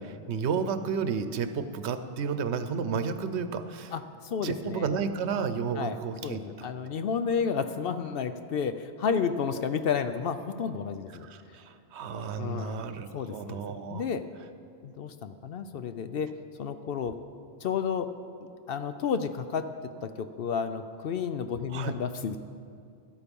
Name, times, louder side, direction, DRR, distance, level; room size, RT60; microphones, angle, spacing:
voice 1, 0.0-3.9 4.4-6.7 11.2-14.1 21.7-21.9, right 6 dB, 75° right, 11 dB, 1.0 m, -32 dB
voice 2, 3.9-4.9 5.8-6.0 6.2-11.3 12.4-12.9 13.1-13.6 13.9-14.2 14.8-17.2 17.6-18.1 18.7-19.7 20.0-22.4, left 6 dB, 65° left, 10 dB, 0.7 m, -31 dB
13.0 x 12.0 x 5.3 m, 2.4 s
omnidirectional pair, 1.1 m